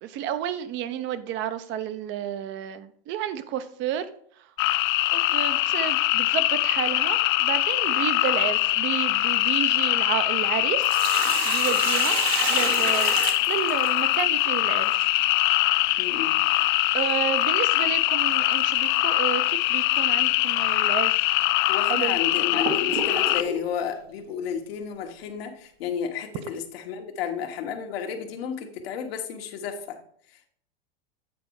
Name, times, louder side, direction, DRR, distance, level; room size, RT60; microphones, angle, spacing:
voice 1, 0.0-4.1 5.1-10.9 11.4-12.2 12.5-13.2 13.5-15.1 16.9-21.2 21.9-22.2, right 10 dB, 35° right, 13 dB, 0.7 m, -31 dB
sound 1, 4.6-23.4, left 18 dB, 55° left, 0.4 m, -23 dB
Sink (filling or washing), 10.6-14.2 16.6-16.7 18.6-18.8 19.3-19.4 20.2-20.3 21.0-21.1 21.8-23.7, right 5 dB, 75° right, 1.5 m, -30 dB
voice 2, 16.0-16.4 21.7-30.0 30.3-30.5, left 7 dB, 70° left, 4 dB, 1.5 m, -32 dB
8.7 x 4.1 x 4.7 m, 0.63 s
hypercardioid pair, 125°, 31 cm